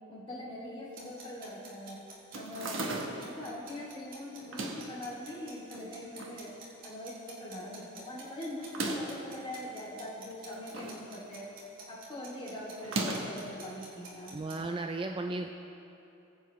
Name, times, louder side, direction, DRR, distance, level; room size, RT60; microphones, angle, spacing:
voice 1, 0.1-2.0 2.3-6.5 6.8-11.5 11.9-14.3, left 1 dB, 25° left, -7 dB, 2.6 m, -42 dB
sound 1, 0.9-14.6, right 3 dB, 40° right, 2.3 m, -50 dB
sound 2, 2.3-3.4 4.4-5.0 5.7-6.4 6.8-6.9 7.0-7.1 8.6-9.2 10.3-11.0 11.3-11.7 12.8-13.5, right 2 dB, 70° right, 1.1 m, -36 dB
voice 2, 14.3-15.5, right 2 dB, 25° right, 4 dB, 0.3 m, -35 dB
20.0 x 8.2 x 3.1 m, 2.8 s
head